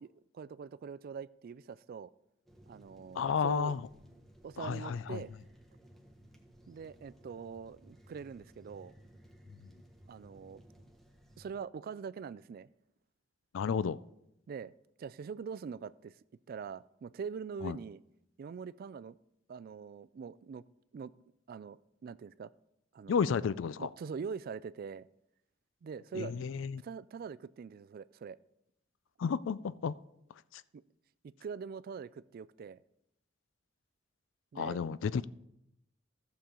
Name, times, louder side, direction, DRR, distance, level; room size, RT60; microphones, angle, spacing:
voice 1, 0.0-2.1 2.7-3.8 4.4-5.3 6.7-8.9 10.1-10.6 11.4-12.7 14.5-14.7 15.0-16.2 16.5-18.0 18.4-19.2 19.5-20.6 20.9-21.1 21.5-22.5 22.9-23.2 23.8-25.1 25.8-26.5 26.8-28.4 30.7-30.8 31.2-32.8 34.5-34.8, right 6 dB, 50° right, 17 dB, 0.3 m, -43 dB
sound 1, 2.5-11.5, equal, ahead, 1.2 m, -58 dB
voice 2, 3.2-3.8 4.6-5.2 13.5-14.0 17.6-17.8 23.1-23.9 26.1-26.8 29.2-29.9 30.5-30.6 34.6-35.3, left 6 dB, 70° left, 18 dB, 0.4 m, -32 dB
15.0 x 7.0 x 3.8 m, 0.82 s
head